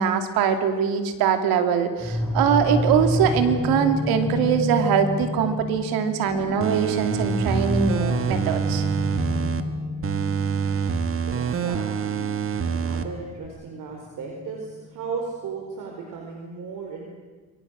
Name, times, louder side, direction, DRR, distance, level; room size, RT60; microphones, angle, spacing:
voice 1, 0.0-8.8, right 7 dB, 85° right, 6 dB, 2.9 m, -22 dB
sound 1, 2.0-14.8, left 1 dB, 10° left, 5.8 m, -30 dB
sound 2, 6.6-9.6 10.0-13.0 13.4-13.5, right 7 dB, 40° right, 1.8 m, -26 dB
voice 2, 11.2-12.3 12.6-17.0, right 5 dB, 65° right, 1 dB, 4.7 m, -35 dB
28.0 x 23.5 x 6.5 m, 1.3 s
cardioid pair, 115°, 35 cm